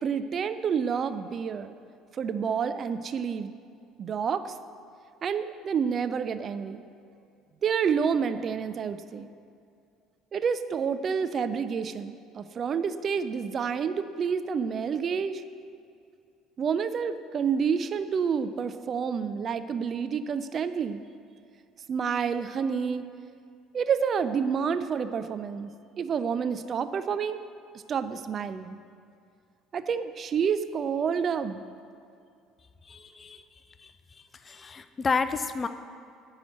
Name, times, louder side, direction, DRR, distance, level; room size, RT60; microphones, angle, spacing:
voice 1, 0.0-1.7 2.1-3.5 4.0-4.5 5.2-6.8 7.6-9.3 10.3-15.4 16.6-21.0 21.9-23.1 23.7-25.7 26.0-27.4 27.9-28.8 29.7-31.6, right 6 dB, 40° right, 11 dB, 0.5 m, -29 dB
voice 2, 32.9-33.4 33.8-35.7, left 4 dB, 30° left, 11 dB, 0.5 m, -31 dB
10.0 x 5.0 x 7.8 m, 2.4 s
figure-of-eight pair, 60°, 0 cm